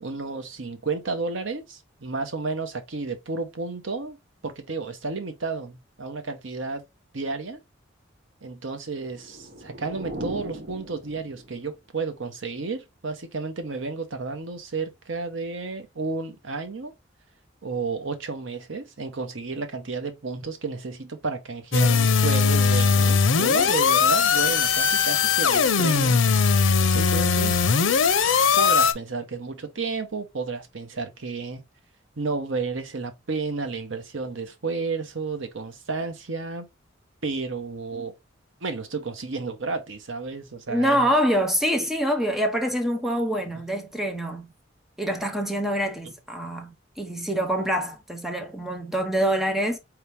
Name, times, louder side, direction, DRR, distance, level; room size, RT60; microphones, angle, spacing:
voice 1, 0.0-4.2 4.4-6.8 7.1-7.6 8.4-16.9 17.6-26.2 26.9-27.6 28.6-31.6 32.2-36.7 37.2-38.1 38.6-41.1 43.5-43.6 46.0-46.1, right 4 dB, 80° right, 0.9 m, -32 dB
sound 1, 9.1-11.7, right 1 dB, 50° right, 0.8 m, -38 dB
sound 2, 21.7-28.9, left 5 dB, 85° left, 0.6 m, -20 dB
voice 2, 40.7-44.5 45.0-49.8, equal, ahead, 0.8 m, -25 dB
4.6 x 2.9 x 3.3 m
head